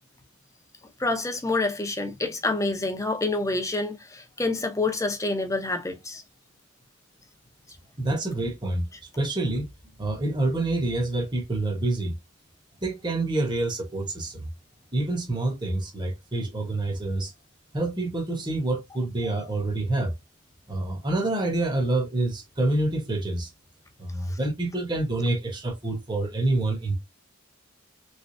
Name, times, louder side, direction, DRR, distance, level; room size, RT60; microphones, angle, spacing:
voice 1, 1.0-6.2 19.2-19.5 24.3-24.4, left 2 dB, 15° left, 0.6 m, -28 dB
voice 2, 8.0-8.9 9.2-9.7 10.0-12.2 12.8-14.5 14.9-17.3 17.7-20.1 20.7-23.5 24.0-26.9, right 2 dB, 20° right, 1.0 m, -27 dB
3.5 x 3.3 x 2.5 m
head